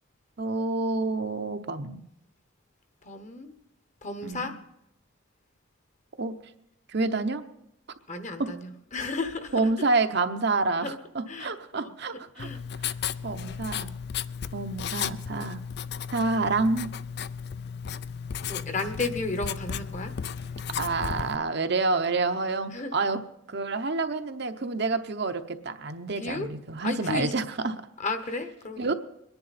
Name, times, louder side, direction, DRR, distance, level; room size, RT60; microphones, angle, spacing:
voice 1, 0.4-2.0 4.2-4.5 6.2-6.4 6.9-7.4 8.4-8.5 9.5-12.5 13.2-13.9 14.5-15.6 16.1-16.9 20.8-23.2 23.5-27.8 28.8-28.9, right 3 dB, 50° right, 8 dB, 0.8 m, -28 dB
voice 2, 3.0-3.5 4.0-4.5 8.1-9.5 10.8-11.0 11.3-11.9 12.4-12.6 18.5-20.1 22.7-22.9 26.2-26.5 26.8-27.3 28.0-28.9, left 3 dB, 35° left, 8 dB, 1.0 m, -33 dB
Writing, 12.4-21.4, left 7 dB, 50° left, 0.4 m, -34 dB
23.0 x 10.5 x 4.2 m, 0.81 s
head